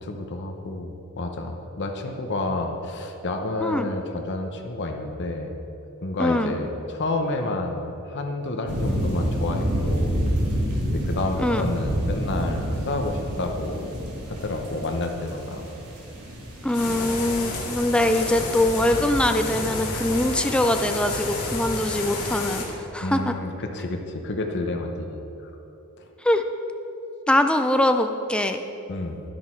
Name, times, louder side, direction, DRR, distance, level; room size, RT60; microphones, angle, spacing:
voice 1, 0.0-5.5 6.0-10.2 10.9-13.9 14.3-15.7 17.5-17.6 23.0-25.2 28.9-29.2, left 2 dB, 50° left, 3 dB, 0.9 m, -29 dB
voice 2, 3.6-3.9 6.2-6.6 11.4-11.7 16.6-22.6 22.9-23.3 26.2-26.4 27.3-28.6, left 1 dB, 5° left, 6 dB, 0.4 m, -23 dB
sound 1, 8.6-17.7, equal, 90° right, 2.6 m, -28 dB
sound 2, 16.7-22.6, left 2 dB, 80° left, 2.1 m, -30 dB
10.5 x 10.5 x 4.5 m, 2.9 s
head